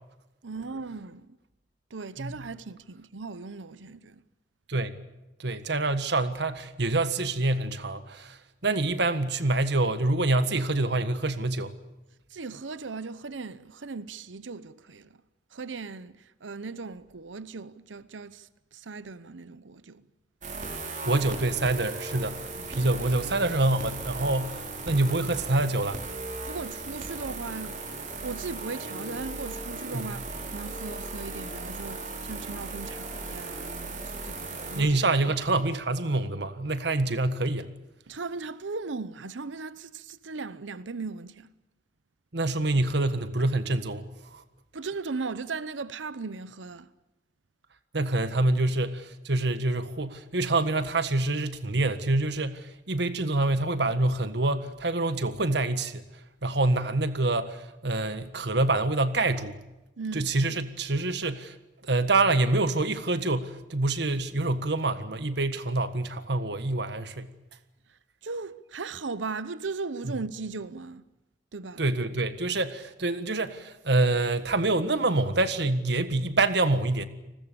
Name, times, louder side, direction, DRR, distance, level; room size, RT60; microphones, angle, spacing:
voice 1, 0.4-1.4 1.9-4.2 12.3-15.2 15.5-20.0 22.6-22.8 26.4-27.8 28.2-30.3 30.5-34.9 38.1-41.5 44.7-46.9 60.0-60.3 68.2-71.0 71.5-71.8, right 4 dB, 90° right, 0.8 m, -38 dB
voice 2, 5.4-11.7 21.0-22.4 22.7-26.0 29.9-30.2 34.7-37.7 42.3-44.0 44.3-44.4 47.9-56.0 56.4-59.6 60.1-61.5 61.8-67.3 71.8-77.1, right 2 dB, 65° right, 1.6 m, -26 dB
sound 1, 20.4-34.8, right 3 dB, 45° right, 4.7 m, -37 dB
29.5 x 20.5 x 6.9 m
head